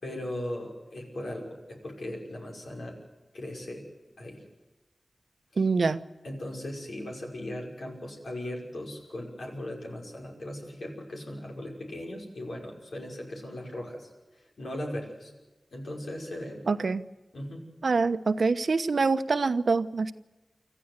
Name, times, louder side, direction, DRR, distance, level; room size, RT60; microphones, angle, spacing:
voice 1, 0.0-1.6 1.8-2.9 3.3-3.8 4.2-4.4 5.6-5.7 6.2-14.1 14.6-15.3 15.7-16.6 17.3-17.6, left 1 dB, 90° left, 0 dB, 5.8 m, -38 dB
voice 2, 5.6-6.0 16.7-17.0 17.8-20.1, right 4 dB, 80° right, 11 dB, 1.0 m, -25 dB
25.5 x 14.0 x 8.2 m, 1.1 s
wide cardioid pair, 55°, 0 cm